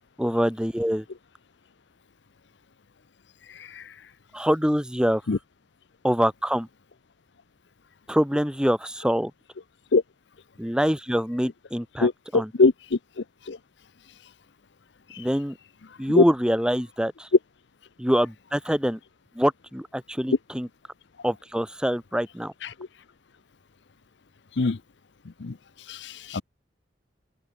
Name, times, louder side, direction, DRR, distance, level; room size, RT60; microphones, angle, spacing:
voice 1, 0.2-1.0 4.3-5.2 6.0-6.7 8.1-9.3 10.6-12.5 15.2-15.6 16.0-17.3 18.0-19.0 19.4-20.7 21.2-22.5, equal, 5° right, 2.0 m, -25 dB
voice 2, 12.0-13.0 13.5-13.6 16.2-16.3 24.6-24.8 25.4-25.5 25.9-26.4, left 3 dB, 70° left, 0.7 m, -21 dB
head